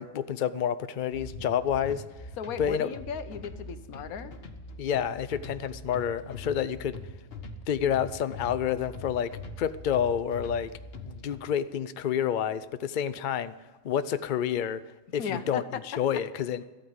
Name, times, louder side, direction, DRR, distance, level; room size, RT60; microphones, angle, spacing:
voice 1, 0.0-2.0 2.6-2.9 4.8-7.0 7.7-9.3 9.6-10.7 11.0-13.5 13.8-14.8 15.1-16.6, left 9 dB, 70° left, 13 dB, 0.4 m, -29 dB
sound 1, 1.1-11.4, left 2 dB, 45° left, 1.3 m, -43 dB
voice 2, 2.4-4.3 15.2-15.8 16.1-16.2, left 7 dB, 90° left, 12 dB, 1.3 m, -36 dB
13.5 x 8.9 x 9.4 m, 1.3 s
omnidirectional pair, 1.5 m